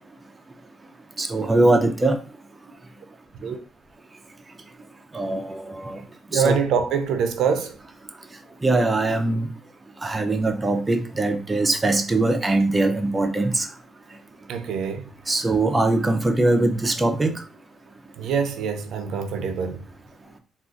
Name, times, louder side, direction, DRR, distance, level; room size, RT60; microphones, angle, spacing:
voice 1, 1.2-2.2 5.1-6.0 6.3-6.6 8.6-9.5 10.0-13.7 15.3-17.3, right 2 dB, 20° right, 0.5 m, -21 dB
voice 2, 6.3-7.7 14.5-15.0 18.2-19.8, right 6 dB, 80° right, 0.5 m, -24 dB
3.6 x 2.4 x 2.4 m
cardioid pair, 90°, 0 cm